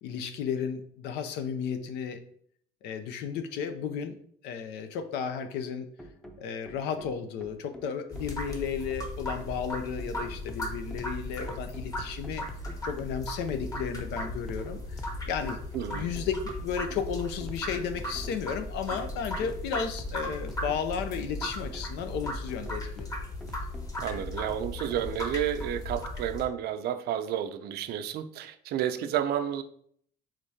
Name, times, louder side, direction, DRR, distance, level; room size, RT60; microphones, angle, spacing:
voice 1, 0.0-2.2 2.8-4.2 4.4-5.9 6.4-12.4 12.8-14.8 15.3-15.6 15.9-16.4 16.6-23.1, left 7 dB, 85° left, 8 dB, 0.6 m, -33 dB
sound 1, 6.0-25.2, equal, 5° left, 0.6 m, -46 dB
sound 2, 8.1-26.4, left 1 dB, 20° left, 0.9 m, -37 dB
voice 2, 15.7-16.1 24.0-29.6, right 10 dB, 70° right, 10 dB, 0.5 m, -31 dB
5.1 x 3.6 x 2.7 m, 0.63 s
cardioid pair, 110°, 17 cm